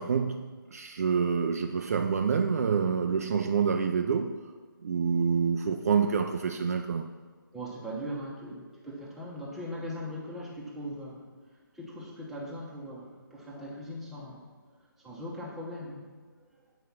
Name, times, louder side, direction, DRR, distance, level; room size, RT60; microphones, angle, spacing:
voice 1, 0.0-4.4 4.8-7.1, right 6 dB, 45° right, 6 dB, 0.4 m, -27 dB
voice 2, 7.5-11.2 11.8-14.4 15.0-16.1, equal, ahead, -6 dB, 1.0 m, -39 dB
7.8 x 4.8 x 5.7 m, 1.4 s
figure-of-eight pair, 155°, 12 cm